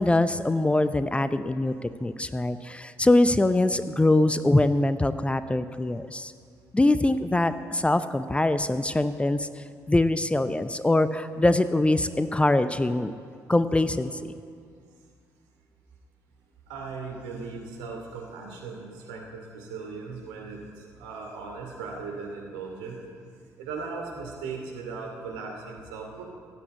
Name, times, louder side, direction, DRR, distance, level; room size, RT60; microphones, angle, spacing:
voice 1, 0.0-6.3 6.7-13.1 13.5-14.1, left 2 dB, 15° left, 12 dB, 0.6 m, -23 dB
voice 2, 16.7-23.0 23.6-26.2, right 4 dB, 70° right, 0 dB, 2.5 m, -38 dB
15.5 x 8.5 x 8.8 m, 2.2 s
figure-of-eight pair, 45°, 8 cm